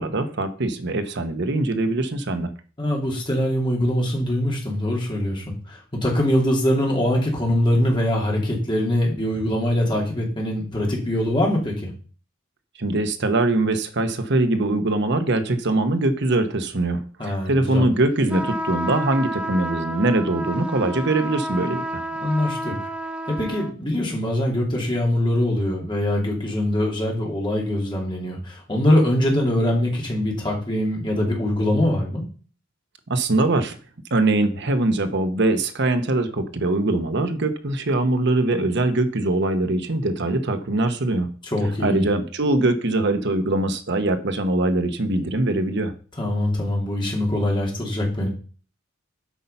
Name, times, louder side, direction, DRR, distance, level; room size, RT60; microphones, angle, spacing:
voice 1, 0.0-2.5 12.8-22.0 33.1-33.8 34.1-41.3 41.8-45.9, right 2 dB, 55° right, 8 dB, 1.0 m, -22 dB
voice 2, 2.8-11.9 17.2-17.8 22.2-22.7 23.3-32.2 41.4-42.1 46.2-48.3, left 1 dB, 20° left, -2 dB, 2.6 m, -23 dB
sound 1, 18.3-23.7, right 1 dB, 5° right, 0.8 m, -30 dB
8.4 x 5.5 x 5.6 m, 0.40 s
head